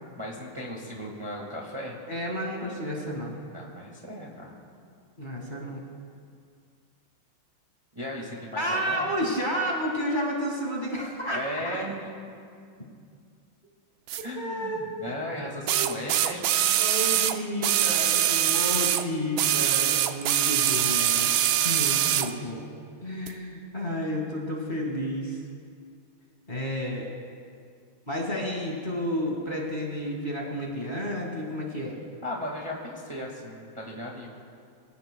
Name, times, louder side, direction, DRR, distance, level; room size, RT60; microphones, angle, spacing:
voice 1, 0.2-1.9 3.5-4.6 7.9-9.1 11.3-12.1 14.2-16.5 32.2-34.3, left 1 dB, 15° right, -2 dB, 1.5 m, -36 dB
voice 2, 2.1-3.4 5.2-5.9 8.6-11.8 14.4-15.0 15.7-16.1 16.7-21.3 21.6-22.7 23.0-25.4 26.5-27.1 28.1-31.9, equal, 25° left, -1 dB, 2.0 m, -31 dB
sound 1, 14.1-14.2 15.7-19.1 19.4-22.3 23.3-23.4, right 11 dB, 85° right, 1.4 m, -23 dB
23.5 x 16.5 x 2.3 m, 2.3 s
omnidirectional pair, 2.2 m